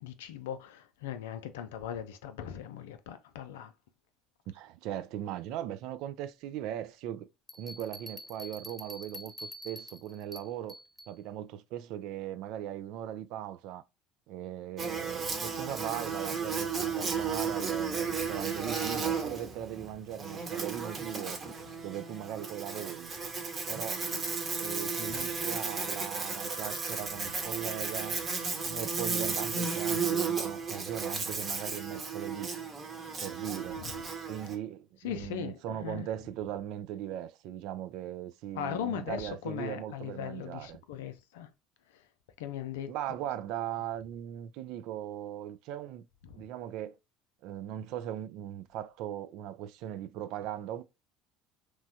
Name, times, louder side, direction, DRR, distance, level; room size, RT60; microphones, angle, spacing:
voice 1, 0.0-3.7 18.2-18.3 25.1-25.2 27.2-27.3 33.7-34.1 35.0-36.1 38.5-41.5 41.9-42.0 42.4-42.9 46.3-46.4, left 9 dB, 75° left, 0.4 m, -39 dB
voice 2, 4.5-7.3 7.6-10.8 11.1-13.8 14.3-21.4 21.8-23.1 23.7-24.1 24.6-28.2 28.6-32.5 33.2-33.8 34.3-40.8 42.9-46.0 46.3-47.0 47.4-50.8, right 11 dB, 65° right, 0.3 m, -39 dB
Bell, 7.5-11.2, equal, 10° left, 0.5 m, -46 dB
Buzz, 14.8-34.6, right 5 dB, 35° right, 0.9 m, -34 dB
3.1 x 2.2 x 2.6 m
hypercardioid pair, 65°, 0 cm